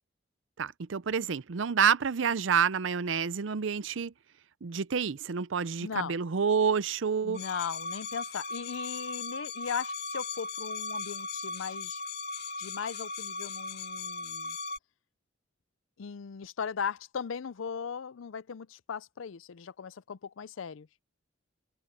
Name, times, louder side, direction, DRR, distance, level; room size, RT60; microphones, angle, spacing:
voice 1, 0.6-4.1 4.6-7.4, right 6 dB, 75° right, 0.6 m, -28 dB
voice 2, 5.8-6.2 7.2-12.0 12.6-14.6 16.0-20.9, left 6 dB, 90° left, 0.5 m, -38 dB
sound 1, 7.3-14.8, left 4 dB, 60° left, 1.8 m, -37 dB
head